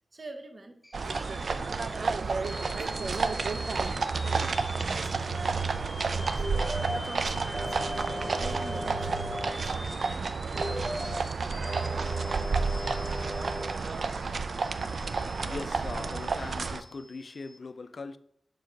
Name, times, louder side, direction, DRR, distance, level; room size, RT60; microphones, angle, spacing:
voice 1, 0.1-10.9, right 2 dB, 40° right, 0.8 m, -47 dB
sound 1, 0.8-17.6, left 1 dB, 15° left, 0.9 m, -46 dB
sound 2, 0.9-16.8, right 4 dB, 65° right, 0.4 m, -31 dB
sound 3, 6.4-7.0 7.5-9.5 10.5-11.2 11.6-13.6, left 1 dB, ahead, 1.2 m, -37 dB
voice 2, 15.4-18.2, left 3 dB, 55° left, 0.4 m, -40 dB
6.1 x 4.6 x 4.5 m
wide cardioid pair, 110°, 0 cm